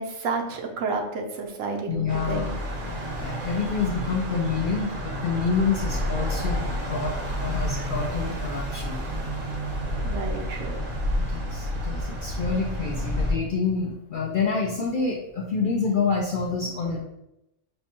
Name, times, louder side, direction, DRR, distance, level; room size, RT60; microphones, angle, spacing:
voice 1, 0.0-2.5 10.0-10.8, right 4 dB, 85° right, 3 dB, 1.0 m, -30 dB
voice 2, 1.9-2.5 2.8-9.0 11.2-17.0, left 5 dB, 65° left, -2 dB, 0.5 m, -27 dB
sound 1, 2.1-13.3, equal, 50° right, 0.7 m, -30 dB
5.3 x 2.2 x 2.9 m, 0.87 s
omnidirectional pair, 1.3 m